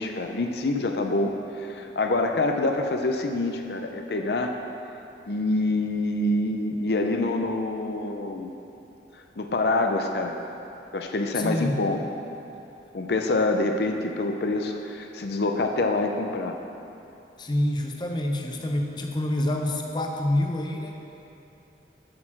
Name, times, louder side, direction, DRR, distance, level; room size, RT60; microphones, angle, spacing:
voice 1, 0.0-4.5 5.3-8.5 9.4-10.4 10.9-12.0 12.9-16.6, left 2 dB, 65° left, 4 dB, 0.6 m, -26 dB
voice 2, 11.3-11.8 17.4-21.0, left 1 dB, 25° left, 2 dB, 0.7 m, -27 dB
8.6 x 6.6 x 5.9 m, 2.8 s
head